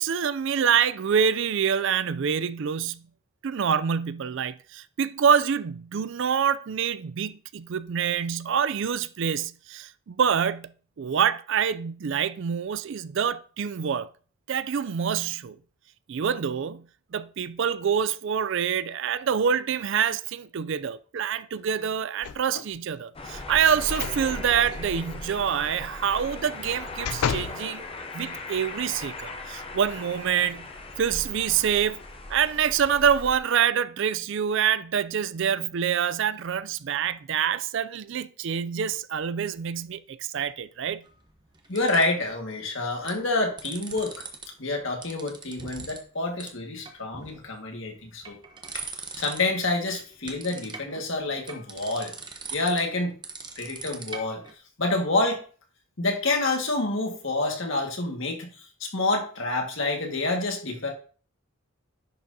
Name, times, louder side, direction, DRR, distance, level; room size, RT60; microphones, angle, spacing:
voice 1, 0.0-3.0 3.4-10.7 11.0-14.1 14.5-15.6 16.1-16.8 17.1-27.9 28.1-30.7 31.0-32.0 32.3-41.0, right 7 dB, 55° right, 0.4 m, -26 dB
sound 1, 22.2-22.8 23.9-24.2 24.6-24.8 26.4-27.6 28.2-28.3, left 7 dB, 85° left, 0.4 m, -32 dB
sound 2, 23.1-33.4, left 2 dB, 25° left, 0.7 m, -38 dB
sound 3, 41.0-42.3 42.8-43.2 43.4-44.4 44.7-46.1 46.4-46.5 46.8-47.5 48.0-49.6 49.9-54.5, right 5 dB, 20° right, 0.9 m, -40 dB
voice 2, 41.7-44.2 44.6-48.4 48.7-48.8 49.2-52.1 52.5-53.1 53.6-54.4 54.8-55.4 56.0-60.9, left 2 dB, 60° left, 1.8 m, -28 dB
10.5 x 6.1 x 2.8 m
head